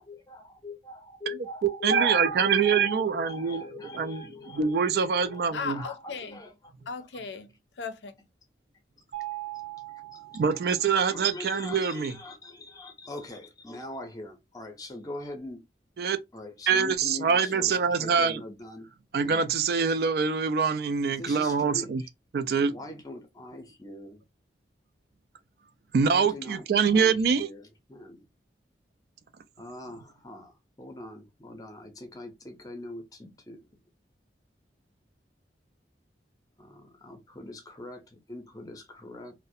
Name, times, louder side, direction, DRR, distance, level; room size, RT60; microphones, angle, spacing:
voice 1, 0.0-6.7 10.1-10.4 10.9-15.6 16.3-18.9 19.2-19.4 21.2-22.1 22.7-24.2 26.0-28.3 29.6-33.6 36.6-39.3, left 2 dB, 20° left, 0.6 m, -42 dB
voice 2, 1.3-3.6 3.9-5.8 10.3-12.1 16.0-16.2 16.7-18.4 19.1-22.0 22.3-22.7 25.9-27.5, right 6 dB, 60° right, 0.3 m, -25 dB
voice 3, 5.5-6.4 6.9-8.1, left 5 dB, 80° left, 0.5 m, -37 dB
Mallet percussion, 9.1-11.1, right 17 dB, 85° right, 1.0 m, -40 dB
2.4 x 2.1 x 2.6 m
head